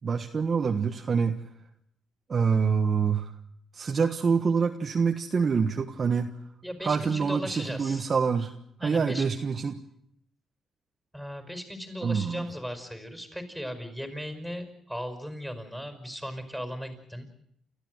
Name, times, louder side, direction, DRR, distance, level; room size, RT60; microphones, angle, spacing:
voice 1, 0.0-1.4 2.3-3.3 3.7-6.3 6.8-8.5 8.8-9.8 12.0-12.5, right 5 dB, 40° right, 4 dB, 1.3 m, -26 dB
voice 2, 6.6-8.1 8.8-9.2 11.1-17.3, equal, 5° left, 7 dB, 5.4 m, -37 dB
29.0 x 13.5 x 7.9 m, 0.71 s
cardioid pair, 90°, 0 cm